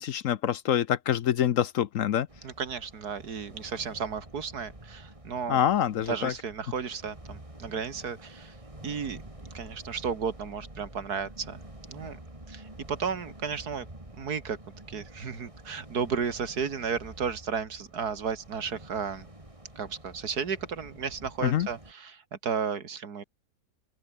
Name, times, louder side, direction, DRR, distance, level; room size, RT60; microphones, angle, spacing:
voice 1, 0.0-2.3 5.5-6.3 21.4-21.7, left 10 dB, 65° left, 1.0 m, -26 dB
sound 1, 2.3-21.9, right 1 dB, 20° right, 4.0 m, -48 dB
voice 2, 2.4-5.6 6.1-8.5 8.8-9.2 9.5-11.6 11.9-12.2 12.5-13.9 14.2-14.6 14.9-19.3 19.8-23.2, right 6 dB, 75° right, 2.4 m, -33 dB
open air
omnidirectional pair, 1.7 m